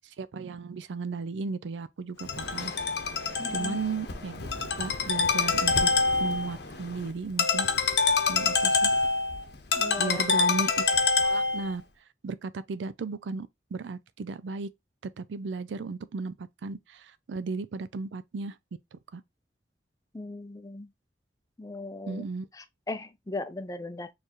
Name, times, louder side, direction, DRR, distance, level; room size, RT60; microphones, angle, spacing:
voice 1, 0.2-2.7 3.2-4.5 4.8-5.9 6.2-7.7 8.3-8.9 10.0-10.8 11.2-11.8 12.2-14.7 15.2-18.5 18.9-19.2 22.1-22.5, right 4 dB, 85° right, 0.4 m, -35 dB
Ringtone, 2.2-11.7, left 4 dB, 65° left, 0.8 m, -26 dB
voice 2, 3.4-3.8 9.8-10.3 20.1-20.9 21.6-22.3 22.5-24.1, left 2 dB, 20° left, 0.4 m, -38 dB
4.5 x 3.3 x 3.0 m
head